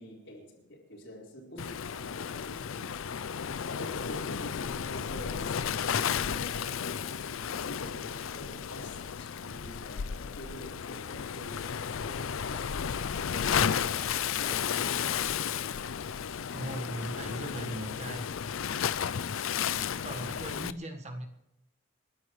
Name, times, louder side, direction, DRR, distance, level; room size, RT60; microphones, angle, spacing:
voice 1, 0.0-15.1, left 1 dB, 65° left, 4.4 m, -47 dB
Waves surf, 1.6-20.7, left 8 dB, 80° left, 0.5 m, -33 dB
voice 2, 16.5-18.3 20.0-21.3, right 1 dB, 35° right, 1.5 m, -38 dB
29.5 x 11.0 x 3.2 m
head